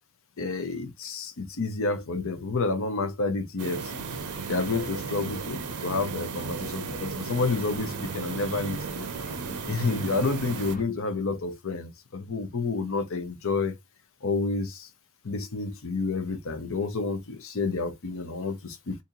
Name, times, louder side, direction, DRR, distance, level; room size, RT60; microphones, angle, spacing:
voice 1, 0.4-3.9 4.5-9.1 9.7-13.7 14.2-14.8 15.2-18.9, left 3 dB, 65° left, 0.7 m, -29 dB
sound 1, 3.6-10.8, right 6 dB, 85° right, 0.5 m, -35 dB
sound 2, 3.7-10.8, left 2 dB, 40° left, 0.9 m, -42 dB
2.7 x 2.7 x 3.7 m
head